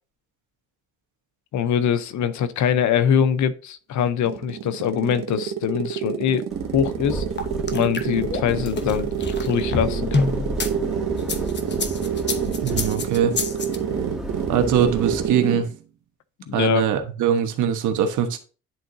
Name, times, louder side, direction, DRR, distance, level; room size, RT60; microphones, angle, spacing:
voice 1, 1.5-6.4 6.7-7.2 7.7-9.1 9.4-10.3 16.5-16.9, left 8 dB, 70° left, 0.7 m, -23 dB
sound 1, 4.0-15.7, right 9 dB, 65° right, 0.9 m, -28 dB
sound 2, 6.5-15.3, equal, ahead, 1.7 m, -32 dB
sound 3, 7.4-10.7 11.2-13.8, left 3 dB, 35° left, 1.0 m, -27 dB
voice 2, 12.6-13.3 14.5-15.7 16.5-18.4, right 8 dB, 80° right, 1.2 m, -22 dB
10.5 x 3.8 x 2.6 m
cardioid pair, 90°, 30 cm